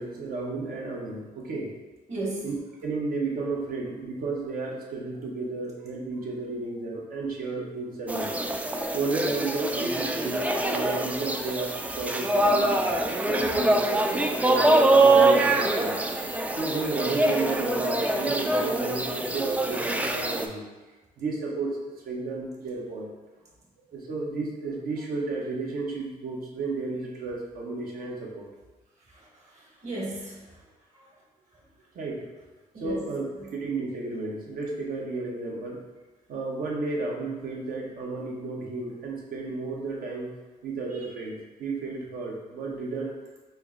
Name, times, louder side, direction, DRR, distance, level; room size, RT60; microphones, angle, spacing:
voice 1, 0.0-1.7 2.4-2.6 2.8-8.4 8.9-12.7 13.1-16.0 16.5-20.7 21.2-23.1 23.9-28.5 31.9-32.3 32.8-33.2 33.5-35.8 36.3-40.3 40.6-43.1, right 3 dB, 70° right, -2 dB, 0.9 m, -33 dB
voice 2, 2.1-2.5 29.0-30.6 30.9-31.1 31.5-31.6 32.7-33.1 33.4-33.5, right 2 dB, 50° right, -4 dB, 1.3 m, -36 dB
sound 1, 8.1-20.5, right 2 dB, 10° right, 0.3 m, -24 dB
4.4 x 2.1 x 3.6 m, 1.2 s
cardioid pair, 90°, 15 cm